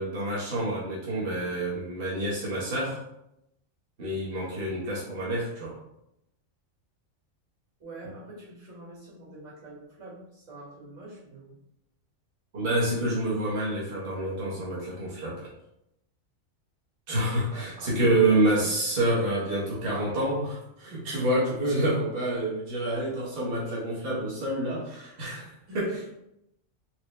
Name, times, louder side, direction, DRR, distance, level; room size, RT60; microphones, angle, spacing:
voice 1, 0.0-3.0 4.0-5.8 12.5-15.5 17.1-26.1, right 1 dB, 50° right, -7 dB, 1.2 m, -28 dB
voice 2, 7.8-11.6 17.5-18.7 25.7-25.8, right 2 dB, 80° right, -7 dB, 2.1 m, -45 dB
4.4 x 2.3 x 3.1 m, 0.82 s
omnidirectional pair, 1.3 m